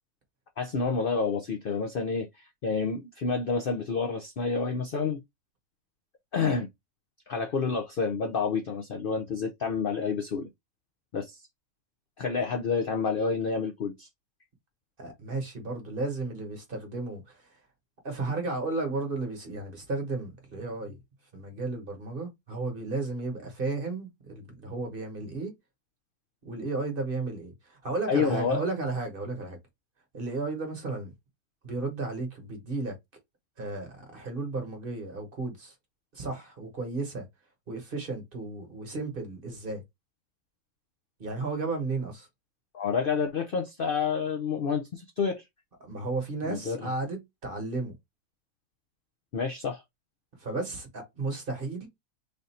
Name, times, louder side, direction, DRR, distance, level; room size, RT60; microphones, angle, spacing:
voice 1, 0.6-5.2 6.3-6.7 7.3-10.5 11.1-11.4 12.2-14.1 28.1-28.6 42.7-45.4 46.4-46.9 49.3-49.8, left 5 dB, 60° left, 0.6 m, -29 dB
voice 2, 15.0-17.4 18.0-21.0 21.3-25.5 26.4-29.6 30.1-31.1 31.6-33.0 33.6-35.7 36.1-37.3 37.7-39.8 41.2-42.3 45.8-47.9 50.4-51.9, right 3 dB, 40° right, 1.2 m, -33 dB
3.5 x 2.6 x 4.1 m
omnidirectional pair, 1.6 m